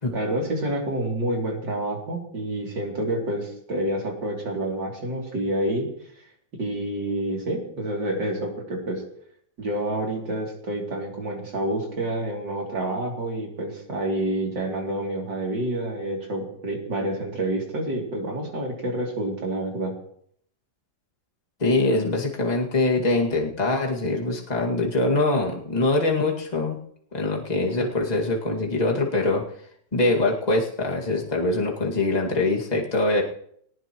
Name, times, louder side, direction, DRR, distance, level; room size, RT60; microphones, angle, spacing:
voice 1, 0.1-5.9 6.5-9.0 9.6-19.9, right 1 dB, 60° right, -1 dB, 3.7 m, -28 dB
voice 2, 21.6-26.8 27.1-29.4 29.9-33.2, left 2 dB, 20° left, -1 dB, 2.2 m, -23 dB
19.0 x 19.0 x 3.1 m, 0.66 s
omnidirectional pair, 2.2 m